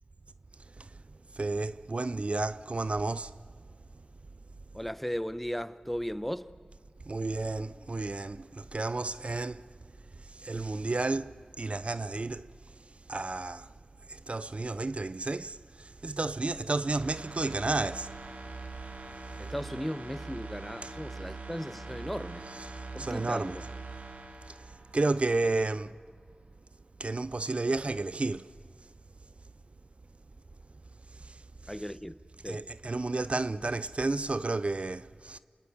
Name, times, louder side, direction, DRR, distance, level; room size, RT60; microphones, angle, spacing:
voice 1, 1.3-3.3 7.1-9.7 10.2-12.5 13.1-13.7 14.1-18.1 20.8-20.9 22.7-23.6 24.5-25.9 27.0-28.5 31.1-31.7 32.4-35.4, right 3 dB, 50° right, 0.6 m, -32 dB
voice 2, 4.7-6.5 19.4-22.5 22.9-23.6 25.5-25.7 31.7-32.2 32.4-32.6, equal, 5° left, 0.9 m, -36 dB
sound 1, 17.0-25.6 26.0-26.1, right 3 dB, 75° right, 2.7 m, -43 dB
27.5 x 20.0 x 8.6 m
cardioid pair, 40°, 3 cm